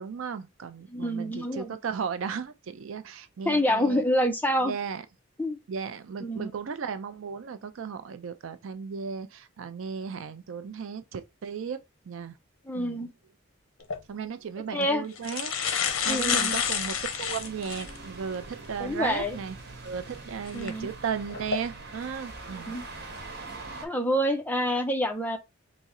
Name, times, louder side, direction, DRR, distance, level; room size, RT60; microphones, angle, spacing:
voice 1, 0.0-4.0 4.6-5.0 5.7-12.4 12.7-13.0 14.1-15.5 16.0-19.6 19.8-22.7, right 6 dB, 70° right, 0.4 m, -35 dB
voice 2, 0.9-1.8 3.5-4.7 5.4-5.6 6.2-6.5 12.7-13.1 14.7-15.1 16.0-16.6 18.8-19.4 20.5-20.9 22.7-22.9 23.8-25.4, equal, 10° left, 0.4 m, -27 dB
sound 1, 13.8-14.0 14.8-14.9 15.2-18.0 18.5-18.6 20.5-20.7 21.3-21.6, left 7 dB, 65° left, 0.6 m, -29 dB
sound 2, 15.8-23.9, right 3 dB, 50° right, 1.0 m, -43 dB
3.6 x 2.0 x 4.1 m
head